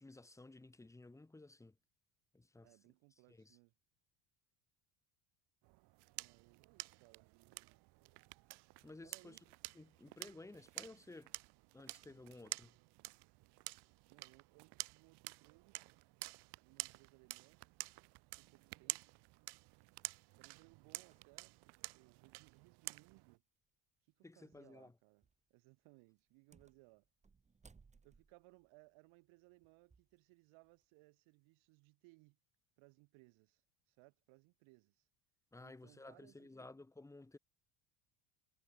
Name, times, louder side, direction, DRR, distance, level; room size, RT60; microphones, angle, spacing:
voice 1, 0.0-1.8 2.3-2.7 3.3-3.6 8.8-9.4 9.7-11.3 11.7-12.8 24.2-24.9 35.5-37.4, left 2 dB, 5° left, 1.7 m, -55 dB
voice 2, 2.6-3.7 6.1-7.8 9.0-9.4 14.1-15.8 16.6-17.6 18.4-19.0 20.3-23.4 24.1-27.1 28.0-32.4 32.8-33.6 33.9-35.1 35.6-36.5, right 26 dB, 75° right, 5.9 m, -66 dB
sound 1, 5.6-23.4, right 24 dB, 55° right, 0.7 m, -50 dB
sound 2, 18.5-18.6 19.3-22.8 23.1-23.2 24.5-24.8 25.2-25.5 26.2-30.2 30.6-30.9, right 4 dB, 15° right, 2.8 m, -69 dB
cardioid pair, 175°, 48 cm